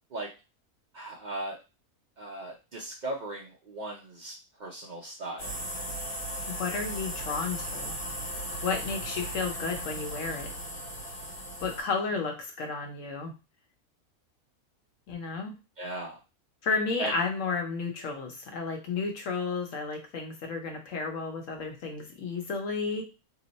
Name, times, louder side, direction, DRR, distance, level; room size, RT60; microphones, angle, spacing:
voice 1, 0.9-1.6 2.2-4.3 4.6-5.5 15.8-16.1 17.0-17.1, right 2 dB, 70° right, -3 dB, 0.4 m, -37 dB
sound 1, 5.4-11.8, equal, 80° left, 1.5 m, -37 dB
voice 2, 6.5-7.9 8.6-10.5 11.6-13.3 15.1-15.5 16.6-23.0, left 4 dB, 65° left, 3 dB, 1.1 m, -32 dB
2.9 x 2.0 x 3.9 m, 0.30 s
omnidirectional pair, 1.5 m